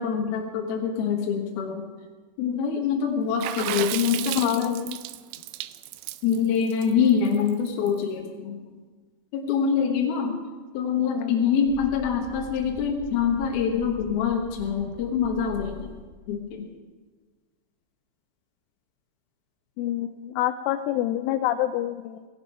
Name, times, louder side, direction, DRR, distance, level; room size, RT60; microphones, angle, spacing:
voice 1, 0.0-1.8 2.4-4.8 6.2-8.6 9.3-10.4 10.7-16.0 16.3-16.7, left 7 dB, 65° left, 0 dB, 2.7 m, -25 dB
Water / Splash splatter, 3.4-7.9, right 15 dB, 90° right, 2.4 m, -33 dB
voice 2, 4.3-5.0 11.1-11.5 19.8-22.3, left 13 dB, 85° left, 8 dB, 3.1 m, -27 dB
sound 1, 11.6-16.5, left 3 dB, 5° right, 5.4 m, -43 dB
17.5 x 16.5 x 4.7 m, 1.4 s
omnidirectional pair, 5.6 m